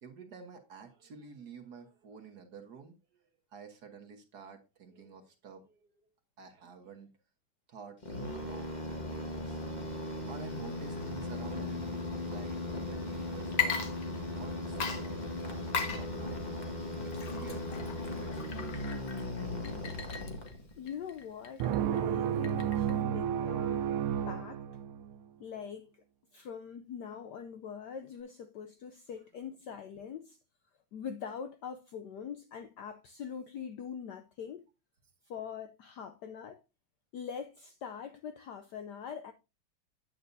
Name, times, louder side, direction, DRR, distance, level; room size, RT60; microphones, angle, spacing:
voice 1, 0.0-3.2 3.5-6.1 6.4-7.1 7.7-8.0 8.3-9.6 10.2-13.9 14.3-19.0, right 6 dB, 50° right, 1.6 m, -51 dB
sound 1, 8.0-20.9, left 2 dB, 25° left, 1.4 m, -38 dB
Water / Liquid, 13.4-14.5 14.8-23.0, left 6 dB, 50° left, 1.3 m, -38 dB
voice 2, 20.7-23.9 24.3-24.6 25.4-26.0 26.3-30.4 30.9-34.7 35.2-36.6 37.1-39.3, left 7 dB, 75° left, 1.0 m, -43 dB
sound 2, 21.6-25.2, right 9 dB, 80° right, 1.5 m, -31 dB
9.3 x 8.6 x 2.6 m
omnidirectional pair, 2.4 m